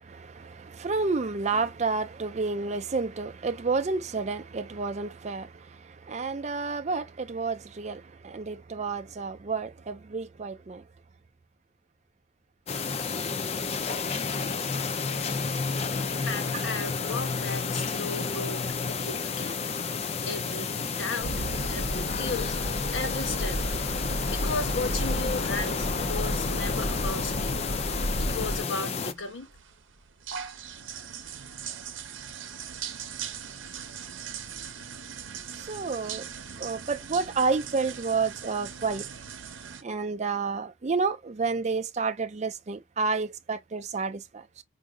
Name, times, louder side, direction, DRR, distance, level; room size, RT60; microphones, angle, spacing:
voice 1, 0.0-10.8 16.5-16.6 35.6-36.2 36.6-39.1 39.8-44.6, right 4 dB, 35° right, 0.4 m, -30 dB
sound 1, 12.7-29.1, left 5 dB, 35° left, 0.4 m, -31 dB
voice 2, 16.2-19.7 20.2-21.3 21.7-22.6 22.9-23.6 24.3-27.6 28.2-29.5, left 3 dB, 75° left, 1.2 m, -35 dB
sound 2, 21.2-28.6, equal, 50° left, 0.9 m, -32 dB
sound 3, 29.1-39.8, right 8 dB, 85° right, 0.7 m, -40 dB
4.9 x 2.6 x 2.3 m
head